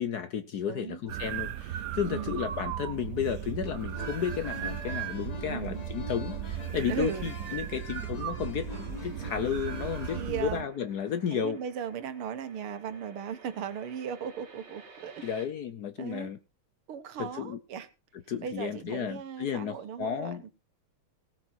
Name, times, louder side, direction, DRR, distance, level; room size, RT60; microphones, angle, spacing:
voice 1, 0.0-11.6 15.2-16.4 17.2-17.6 18.3-20.4, left 8 dB, 60° left, 1.1 m, -33 dB
voice 2, 0.7-1.0 2.1-2.4 5.5-5.8 6.9-7.3 10.1-10.7 11.3-15.3 16.0-16.3 16.9-17.9 18.4-20.5, right 7 dB, 80° right, 2.1 m, -37 dB
sound 1, 1.1-10.6, right 11 dB, 65° right, 1.1 m, -36 dB
sound 2, 3.6-10.3, left 4 dB, 40° left, 0.5 m, -44 dB
sound 3, 8.6-15.5, right 4 dB, 30° right, 2.0 m, -55 dB
17.0 x 8.6 x 4.5 m
omnidirectional pair, 2.4 m